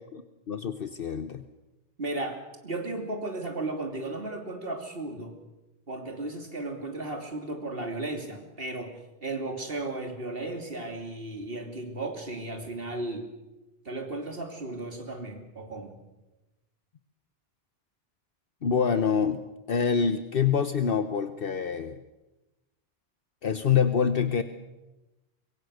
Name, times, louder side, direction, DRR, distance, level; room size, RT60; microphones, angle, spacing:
voice 1, 0.5-1.4 18.6-19.4 19.7-22.0 23.4-24.4, left 7 dB, 65° left, 10 dB, 1.2 m, -26 dB
voice 2, 2.0-5.4 5.9-13.3 13.8-16.0, right 2 dB, 65° right, 4 dB, 3.3 m, -35 dB
24.5 x 23.0 x 6.5 m, 1.0 s
omnidirectional pair, 1.0 m